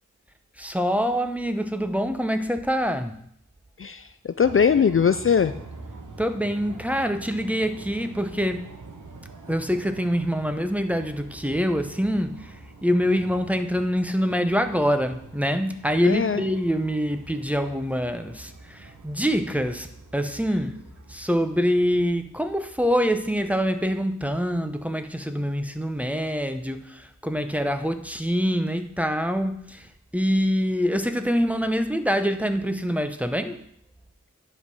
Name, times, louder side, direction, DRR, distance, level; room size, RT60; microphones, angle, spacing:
voice 1, 0.6-3.2 6.2-8.7 9.5-20.8 21.1-33.6, equal, 5° right, 8 dB, 0.8 m, -25 dB
voice 2, 3.8-5.5 16.0-16.4, left 6 dB, 45° left, 11 dB, 0.4 m, -21 dB
sound 1, 4.4-22.2, right 3 dB, 75° right, 1.1 m, -45 dB
10.0 x 5.6 x 4.8 m, 0.69 s
wide cardioid pair, 50°, 30 cm